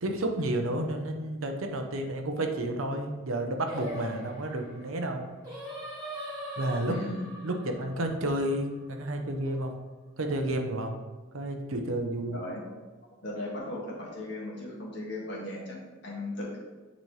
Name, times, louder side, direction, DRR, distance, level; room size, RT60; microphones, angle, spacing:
voice 1, 0.0-5.3 6.6-6.9 7.4-9.8 10.2-11.0 11.3-12.4, right 1 dB, 85° right, 4 dB, 0.8 m, -31 dB
Singing, 3.7-9.0, left 1 dB, 20° right, 2.1 m, -41 dB
voice 2, 6.8-7.3 9.4-9.5 12.3-12.6 13.2-15.8 16.0-16.6, left 2 dB, 55° left, -4 dB, 1.9 m, -37 dB
9.1 x 4.1 x 3.3 m, 1.3 s
head